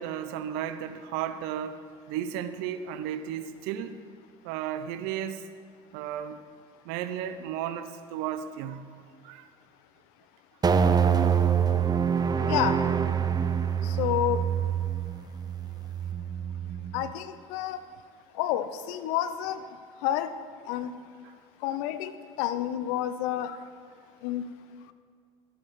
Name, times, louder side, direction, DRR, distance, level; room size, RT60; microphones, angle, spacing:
voice 1, 0.0-1.8 2.1-4.0 4.4-5.5 5.9-6.4 6.8-8.8 9.2-9.5 21.2-21.3, right 10 dB, 65° right, 11 dB, 0.7 m, -34 dB
sound 1, 10.6-17.1, right 7 dB, 20° right, 0.5 m, -26 dB
voice 2, 12.4-12.8 13.8-14.5 16.9-17.8 18.4-19.6 20.0-20.3 20.7-20.9 21.6-22.1 22.4-23.6 24.2-24.5, left 12 dB, 65° left, 13 dB, 0.6 m, -29 dB
13.5 x 7.4 x 4.8 m, 2.1 s
hypercardioid pair, 65°, 18 cm